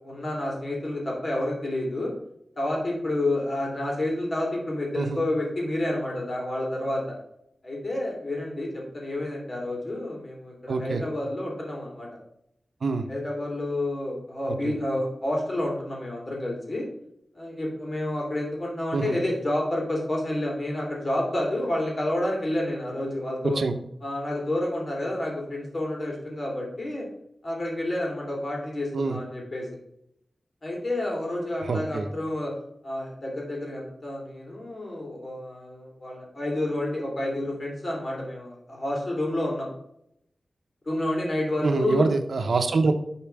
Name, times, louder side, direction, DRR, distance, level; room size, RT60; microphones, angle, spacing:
voice 1, 0.0-2.1 2.6-7.1 7.6-12.1 13.1-16.8 17.3-23.6 24.0-27.0 27.4-29.7 30.6-32.5 32.8-39.7 40.8-42.1, left 1 dB, 45° left, -2 dB, 3.0 m, -29 dB
voice 2, 10.7-11.0 12.8-13.1 14.6-14.7 18.9-19.2 23.4-23.7 28.9-29.2 31.6-32.1 41.6-42.9, right 3 dB, 75° right, 7 dB, 0.7 m, -25 dB
7.3 x 4.4 x 4.6 m, 0.78 s
wide cardioid pair, 80°, 0 cm